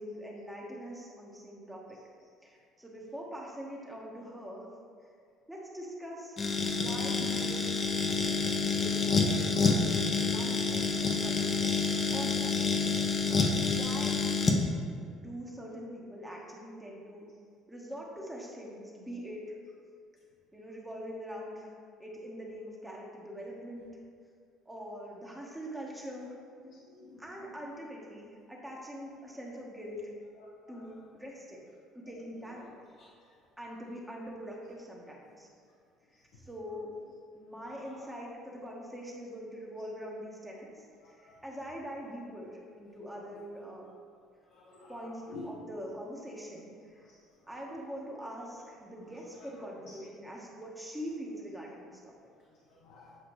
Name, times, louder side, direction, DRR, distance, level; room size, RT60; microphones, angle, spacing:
voice 1, 0.0-2.0 2.4-4.6 5.5-7.6 8.7-9.9 10.1-11.6 12.1-12.7 13.7-14.3 15.1-17.3 17.7-19.4 20.5-21.7 22.0-23.9 24.7-26.3 27.2-30.0 30.7-31.6 31.9-32.7 33.6-35.5 36.4-36.9 37.3-40.7 41.2-43.9 44.9-47.1 47.5-52.1, equal, 10° right, -3 dB, 1.1 m, -43 dB
sound 1, 6.4-14.6, left 4 dB, 35° left, 0.7 m, -28 dB
voice 2, 26.6-27.5 29.5-29.6 30.7-30.8 37.5-38.1 41.3-41.4 44.5-45.5 49.9-50.0 52.8-53.2, left 3 dB, 80° left, -5 dB, 1.1 m, -50 dB
8.1 x 4.8 x 3.1 m, 2.2 s
cardioid pair, 115°, 0 cm